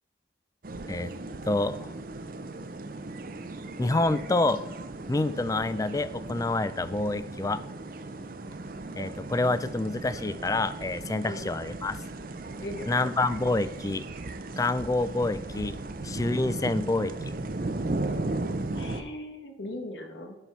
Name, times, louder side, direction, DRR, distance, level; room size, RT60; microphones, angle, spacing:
sound 1, 0.6-19.0, right 2 dB, 50° right, 0.6 m, -36 dB
voice 1, 1.4-1.9 3.8-4.6 5.1-7.6 9.0-12.0 12.9-14.0 14.6-15.8 16.0-17.1, left 2 dB, 20° left, 14 dB, 0.3 m, -27 dB
voice 2, 12.6-13.1 18.7-20.4, left 1 dB, 80° left, 5 dB, 1.5 m, -39 dB
9.9 x 6.0 x 5.5 m, 1.0 s
head